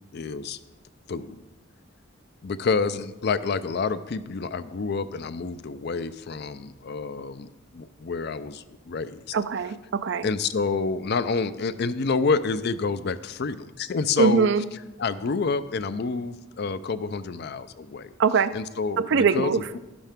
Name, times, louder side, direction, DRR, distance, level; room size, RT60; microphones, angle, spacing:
voice 1, 0.1-0.6 1.1-1.4 2.4-9.3 10.2-14.5 15.0-18.1 18.5-19.8, left 4 dB, 50° left, 13 dB, 0.4 m, -28 dB
voice 2, 9.3-10.3 14.2-14.6 18.2-18.5 19.0-19.6, right 5 dB, 55° right, 13 dB, 0.4 m, -22 dB
11.5 x 11.0 x 3.5 m, 1.1 s
head